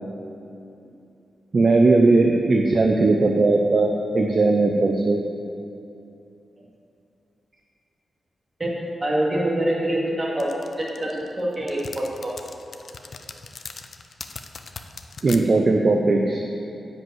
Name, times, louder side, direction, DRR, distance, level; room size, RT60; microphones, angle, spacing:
voice 1, 1.5-5.2 15.2-16.4, right 3 dB, 40° right, 2 dB, 0.6 m, -18 dB
voice 2, 9.0-12.3, right 1 dB, 25° right, -4 dB, 2.1 m, -25 dB
sound 1, 10.4-15.4, left 5 dB, 55° left, 0.6 m, -38 dB
10.5 x 5.3 x 7.9 m, 2.8 s
wide cardioid pair, 135°, 0 cm